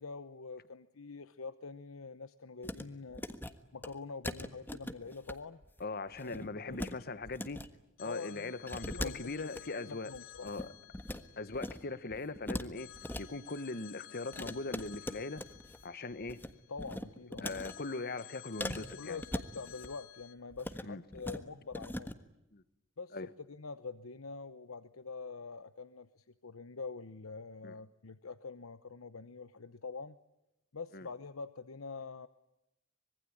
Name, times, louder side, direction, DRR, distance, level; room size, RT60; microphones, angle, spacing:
voice 1, 0.0-3.2 3.7-5.6 6.2-7.0 8.0-8.5 8.9-9.3 9.9-10.5 16.7-17.5 19.0-19.3 19.5-22.1 23.0-23.2 23.5-30.2 30.7-32.3, left 4 dB, 80° left, 0.9 m, -45 dB
sound 1, 2.6-2.8 3.1-3.5 3.8-3.9 4.2-5.3 5.6-5.8 6.1-6.9 7.2-7.7 8.7-9.6 10.1-11.2 11.5-11.8 12.1-13.2 14.3-15.8 16.1-16.5 16.8-17.7 18.6-19.9 20.5-20.9 21.1-21.4 21.7-22.1, left 1 dB, 10° left, 1.4 m, -40 dB
voice 2, 5.8-7.6 8.0-10.1 10.4-10.7 11.4-12.9 13.2-15.4 15.8-16.4 17.4-19.2 20.8-21.0 22.5-22.6 23.1-23.3 27.6-27.7 30.9-31.1, left 3 dB, 50° left, 1.3 m, -40 dB
Telephone, 8.0-12.3 12.8-17.0 17.5-20.3, left 12 dB, 65° left, 3.8 m, -54 dB
25.5 x 22.5 x 8.9 m
head